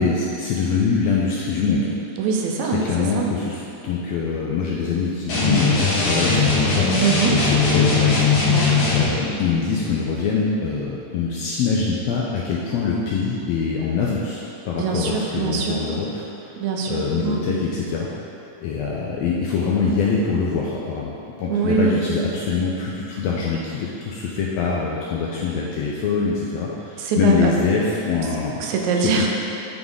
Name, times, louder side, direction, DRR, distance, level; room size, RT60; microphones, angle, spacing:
voice 1, 0.0-1.9 2.6-6.9 7.3-8.3 8.9-16.5 16.9-18.1 18.6-21.1 21.4-29.4, left 5 dB, 80° left, -4 dB, 1.5 m, -24 dB
voice 2, 2.2-3.3 7.0-7.4 8.5-8.9 14.7-15.8 16.6-17.5 21.5-22.1 27.0-27.5 28.6-29.3, right 5 dB, 80° right, 0 dB, 2.0 m, -23 dB
sound 1, 5.3-9.1, left 4 dB, 60° left, 2.3 m, -19 dB
7.9 x 3.6 x 3.7 m, 2.8 s
omnidirectional pair, 3.4 m